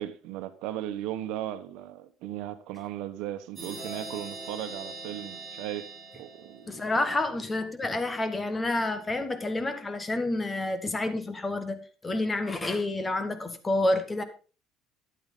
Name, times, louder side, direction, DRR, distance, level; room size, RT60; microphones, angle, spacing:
voice 1, 0.0-5.9 6.1-6.8, right 12 dB, 80° right, 1.1 m, -36 dB
sound 1, 3.6-7.1, right 3 dB, 15° right, 4.6 m, -42 dB
voice 2, 6.7-14.2, left 2 dB, 15° left, 1.2 m, -29 dB
10.5 x 8.8 x 3.9 m
cardioid pair, 150°, 0 cm